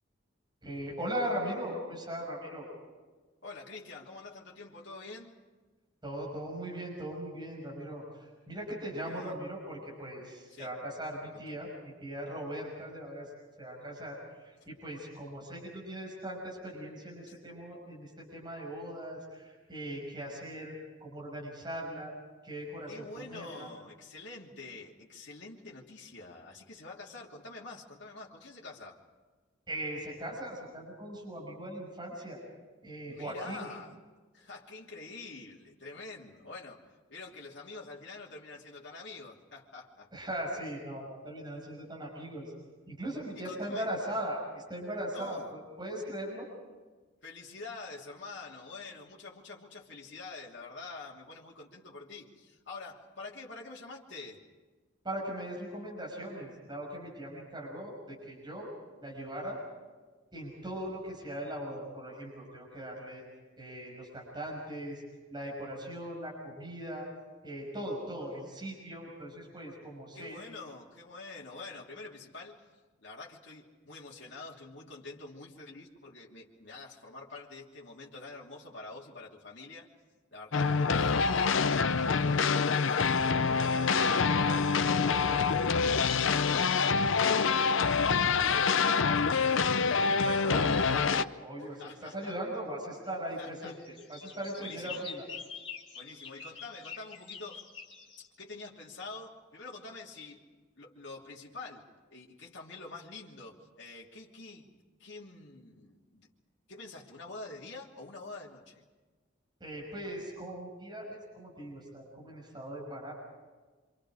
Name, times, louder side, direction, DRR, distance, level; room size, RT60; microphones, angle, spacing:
voice 1, 0.6-2.7 6.0-13.3 13.6-20.7 21.0-22.1 22.4-23.7 29.7-32.4 32.8-33.7 40.1-42.5 42.9-46.5 55.0-58.7 59.0-59.6 60.3-63.2 63.6-65.0 65.3-67.1 67.4-70.4 90.2-95.3 109.6-113.1, right 1 dB, 20° right, -3 dB, 6.2 m, -39 dB
voice 2, 3.4-5.3 9.0-9.4 10.5-10.7 11.3-11.6 17.3-17.4 22.9-29.0 33.1-34.0 34.3-36.8 37.1-40.1 43.3-43.9 45.1-45.5 47.2-54.4 70.1-72.7 73.0-79.9 80.3-89.7 91.6-92.3 93.4-93.8 94.6-95.0 95.9-97.6 98.2-100.5 100.8-106.3 106.7-108.8, left 3 dB, 60° left, -3 dB, 3.0 m, -46 dB
sound 1, 80.5-91.2, left 5 dB, 75° left, 0.7 m, -26 dB
sound 2, 93.6-98.3, left 6 dB, 25° left, 3.0 m, -45 dB
27.0 x 26.5 x 5.0 m, 1.3 s
head